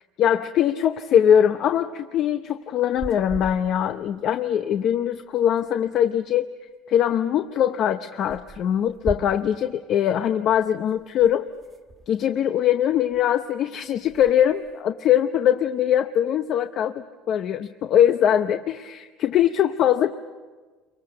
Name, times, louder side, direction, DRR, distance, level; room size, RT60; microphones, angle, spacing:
voice 1, 0.2-6.5 6.9-11.5 12.1-20.2, left 10 dB, 50° left, 8 dB, 0.8 m, -22 dB
sound 1, 2.8-4.2 4.4-4.5 4.7-4.8 5.0-6.1 7.1-7.2 7.5-7.6 8.3-9.7 10.4-12.8 13.1-13.5 13.8-15.0, right 3 dB, 20° right, 1.6 m, -40 dB
29.0 x 23.5 x 6.7 m, 1.4 s
cardioid pair, 145°, 0 cm